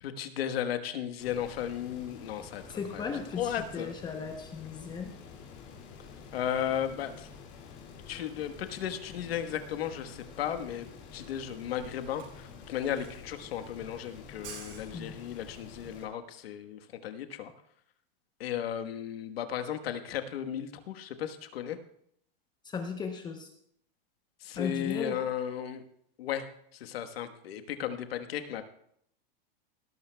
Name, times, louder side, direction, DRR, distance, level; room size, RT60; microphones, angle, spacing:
voice 1, 0.0-3.9 6.3-7.3 8.1-17.5 18.4-21.8 24.4-25.8 26.2-28.6, left 9 dB, 85° left, 8 dB, 1.4 m, -35 dB
sound 1, 1.2-16.1, left 6 dB, 35° left, 2.4 m, -49 dB
voice 2, 2.7-5.1 14.9-15.2 22.6-23.5 24.5-25.2, left 5 dB, 15° left, 4 dB, 0.8 m, -36 dB
Camera, 11.1-15.5, right 5 dB, 45° right, 5.6 m, -50 dB
18.5 x 12.5 x 2.3 m, 0.70 s
supercardioid pair, 155°, 29 cm